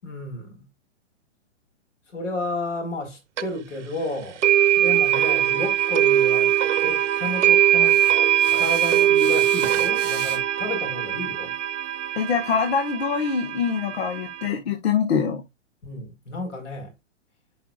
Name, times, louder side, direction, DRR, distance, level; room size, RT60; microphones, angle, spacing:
voice 1, 0.0-0.7 2.1-4.4 4.8-8.0 8.5-11.5 15.8-16.9, left 2 dB, 90° left, 5.1 m, -32 dB
sound 1, 3.4-3.5 4.4-14.5, right 12 dB, 80° right, 0.9 m, -21 dB
sound 2, 7.7-12.9, right 8 dB, 25° right, 1.9 m, -40 dB
voice 2, 12.1-15.4, left 6 dB, 60° left, 1.7 m, -24 dB
10.5 x 6.0 x 2.5 m
hypercardioid pair, 175°, 36 cm